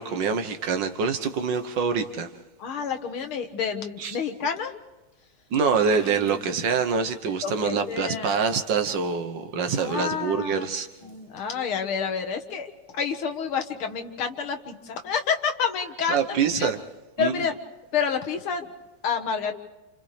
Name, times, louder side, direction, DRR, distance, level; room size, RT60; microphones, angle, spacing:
voice 1, 0.0-2.3 4.0-4.2 5.5-10.9 16.1-16.8 17.2-17.4, right 5 dB, 65° right, 7 dB, 1.7 m, -25 dB
voice 2, 2.6-4.7 6.0-6.4 7.4-8.3 9.8-10.6 11.0-16.7 17.2-17.6 17.9-18.7 19.0-19.5, left 6 dB, 90° left, 6 dB, 2.3 m, -29 dB
28.5 x 28.5 x 3.4 m, 1.1 s
omnidirectional pair, 2.3 m